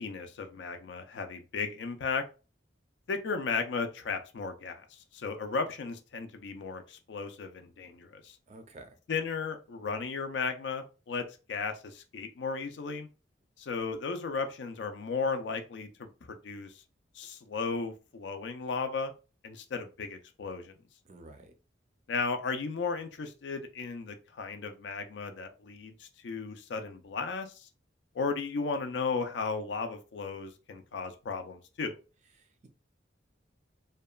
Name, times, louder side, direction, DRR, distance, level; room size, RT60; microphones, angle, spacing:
voice 1, 0.0-2.2 3.1-8.4 9.1-13.1 13.6-16.7 17.2-19.1 19.4-20.8 22.1-27.7 28.1-31.9, left 4 dB, 65° left, 0.4 m, -35 dB
voice 2, 8.5-8.9 21.0-21.5 32.4-32.7, right 2 dB, 35° right, 0.4 m, -51 dB
2.8 x 2.2 x 2.2 m
head